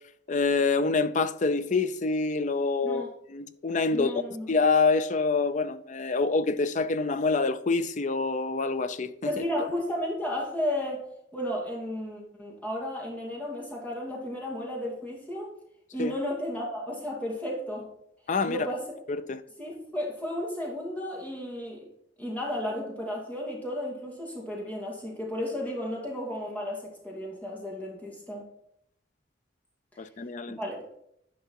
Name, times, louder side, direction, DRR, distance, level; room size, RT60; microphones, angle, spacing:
voice 1, 0.3-3.0 3.3-4.1 4.5-9.3 16.0-16.1 18.3-18.7 19.1-19.4 30.0-30.6, left 4 dB, 40° left, 0.5 m, -26 dB
voice 2, 3.9-4.5 9.2-11.0 11.3-15.5 15.9-17.9 18.5-19.0 19.6-21.8 22.2-28.5 30.5-30.8, left 1 dB, 10° left, 2.5 m, -33 dB
10.5 x 5.5 x 4.5 m
head